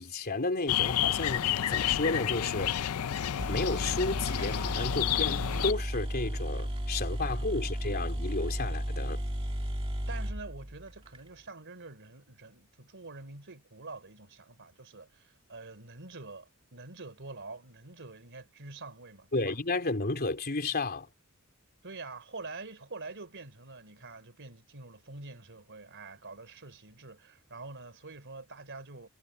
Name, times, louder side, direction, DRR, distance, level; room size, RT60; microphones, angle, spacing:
voice 1, 0.0-2.8 3.5-9.2 19.3-21.1, left 3 dB, 45° left, 3.4 m, -32 dB
sound 1, 0.7-5.7, left 10 dB, 75° left, 0.5 m, -30 dB
sound 2, 3.1-3.2 3.4-11.2, equal, 25° right, 1.8 m, -34 dB
voice 2, 10.1-19.6 21.8-29.1, right 3 dB, 55° right, 3.4 m, -46 dB
head